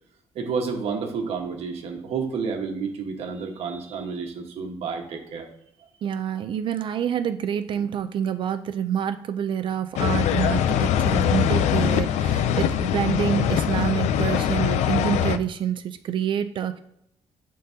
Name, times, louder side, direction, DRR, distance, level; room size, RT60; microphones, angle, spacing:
voice 1, 0.3-5.5, right 5 dB, 60° right, 2 dB, 1.3 m, -30 dB
voice 2, 6.0-16.8, right 9 dB, 45° right, 9 dB, 0.4 m, -27 dB
sound 1, 10.0-15.4, left 9 dB, 80° left, 0.5 m, -22 dB
11.0 x 3.8 x 2.8 m, 0.78 s
cardioid pair, 160°, 11 cm